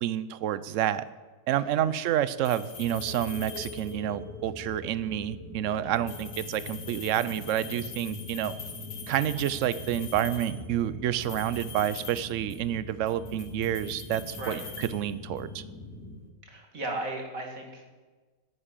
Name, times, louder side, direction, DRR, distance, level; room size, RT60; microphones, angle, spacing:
voice 1, 0.0-1.0 1.5-8.6 9.1-15.6, right 11 dB, 70° right, 16 dB, 0.7 m, -29 dB
sound 1, 2.4-4.2 5.9-10.7 11.2-12.8 13.1-15.5, left 6 dB, 75° left, 2.2 m, -44 dB
sound 2, 2.7-16.2, left 1 dB, 10° left, 2.2 m, -43 dB
voice 2, 16.5-17.8, right 2 dB, 50° right, 1 dB, 2.6 m, -36 dB
11.0 x 8.9 x 8.9 m, 1.3 s
omnidirectional pair, 1.9 m